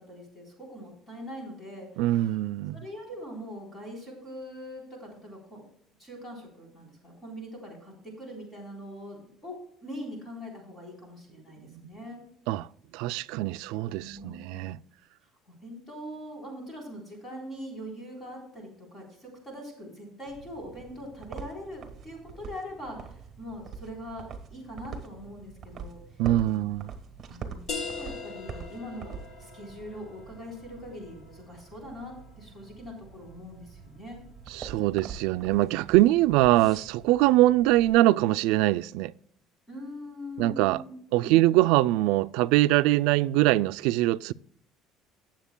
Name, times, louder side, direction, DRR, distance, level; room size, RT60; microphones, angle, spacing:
voice 1, 0.0-2.3 2.7-5.7 6.0-12.2 14.0-14.6 15.5-26.2 26.5-26.6 27.3-34.2 39.7-41.0 41.2-41.5, equal, 20° left, 3.6 m, -42 dB
voice 2, 2.0-2.8 11.7-11.8 12.5-12.7 12.9-14.8 26.2-26.9 34.5-39.1 40.4-40.8 41.1-44.3, right 16 dB, 85° right, 0.3 m, -23 dB
sound 1, 20.3-37.9, right 6 dB, 30° right, 1.5 m, -45 dB
sound 2, 27.7-33.0, left 4 dB, 45° left, 1.4 m, -42 dB
17.5 x 7.4 x 2.2 m
cardioid pair, 140°, 0 cm